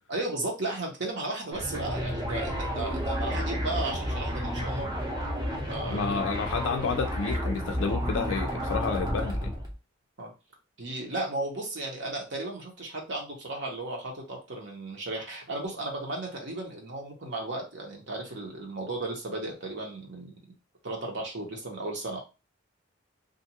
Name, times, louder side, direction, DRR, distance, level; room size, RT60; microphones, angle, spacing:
voice 1, 0.1-4.9 5.7-6.2 10.2-10.3 10.8-20.3 20.8-22.2, right 2 dB, 60° right, 0.9 m, -35 dB
sound 1, 1.5-9.7, equal, 20° right, 0.7 m, -31 dB
voice 2, 5.9-9.5, left 5 dB, 75° left, 0.3 m, -30 dB
2.5 x 2.3 x 2.9 m
head